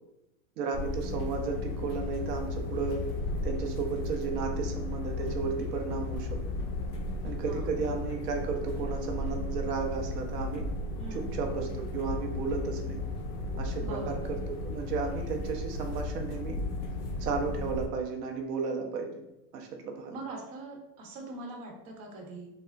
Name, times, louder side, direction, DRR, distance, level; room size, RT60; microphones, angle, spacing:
voice 1, 0.6-3.0 3.4-6.3 7.2-10.6 11.1-13.0 13.6-16.6 17.2-19.2 19.5-20.1, right 5 dB, 85° right, 3 dB, 0.7 m, -34 dB
sound 1, 0.7-17.9, left 2 dB, 45° left, 0.4 m, -35 dB
voice 2, 7.4-7.8 11.0-11.4 13.8-14.3 20.1-22.5, right 2 dB, 55° right, 0 dB, 0.9 m, -42 dB
3.5 x 2.0 x 2.2 m, 0.90 s
hypercardioid pair, 125°, 46 cm